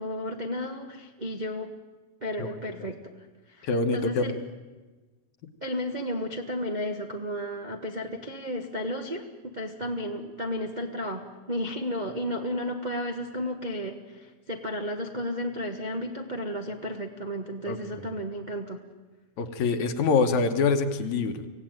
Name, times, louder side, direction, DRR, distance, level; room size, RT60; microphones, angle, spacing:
voice 1, 0.0-1.7 2.2-3.1 3.5-4.4 5.6-18.8, equal, 90° right, 3 dB, 0.4 m, -33 dB
voice 2, 3.6-4.3 17.7-17.8 19.4-21.5, left 4 dB, 70° left, 7 dB, 2.5 m, -25 dB
25.5 x 17.0 x 9.0 m, 1.3 s
omnidirectional pair, 3.5 m